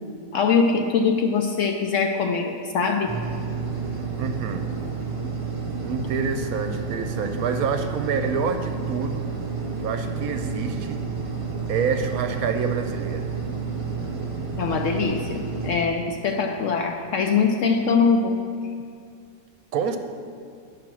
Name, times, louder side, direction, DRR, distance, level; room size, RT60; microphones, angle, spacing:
voice 1, 0.3-3.2 14.6-18.4, left 5 dB, 65° left, 4 dB, 0.8 m, -22 dB
sound 1, 3.1-15.8, right 4 dB, 40° right, 0.4 m, -30 dB
voice 2, 4.2-4.7 5.8-9.3 9.8-11.0 11.7-13.3 19.7-20.0, right 5 dB, 70° right, 7 dB, 1.0 m, -27 dB
11.0 x 4.8 x 6.1 m, 2.3 s
omnidirectional pair, 1.7 m